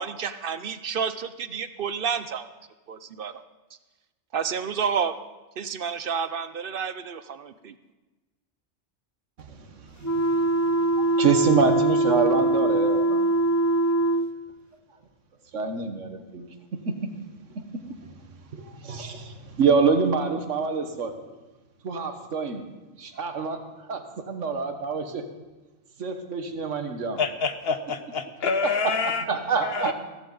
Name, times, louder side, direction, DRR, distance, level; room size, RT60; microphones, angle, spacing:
voice 1, 0.0-2.5 2.9-3.4 4.3-5.1 5.6-7.7, right 6 dB, 55° right, 12 dB, 0.7 m, -30 dB
voice 2, 9.4-13.3 15.5-16.5 16.7-17.1 17.9-18.0 18.5-21.1 21.8-22.6 23.0-23.6 23.9-25.2 26.0-27.2 28.8-28.9 29.3-29.9, right 5 dB, 85° right, 6 dB, 1.6 m, -26 dB
sound 1, 10.0-14.3, right 2 dB, 25° left, 0.4 m, -22 dB
voice 3, 27.2-29.2 29.6-29.9, left 5 dB, 60° left, 9 dB, 1.1 m, -27 dB
15.0 x 14.5 x 4.0 m, 1.2 s
omnidirectional pair, 1.2 m